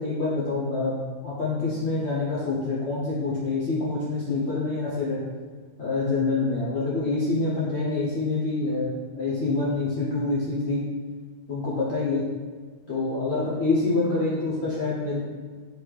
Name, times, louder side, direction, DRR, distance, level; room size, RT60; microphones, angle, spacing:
voice 1, 0.0-5.2 5.8-10.9 11.5-12.2 12.9-15.2, left 3 dB, 60° left, -6 dB, 0.7 m, -26 dB
3.7 x 2.8 x 3.1 m, 1.5 s
omnidirectional pair, 1.5 m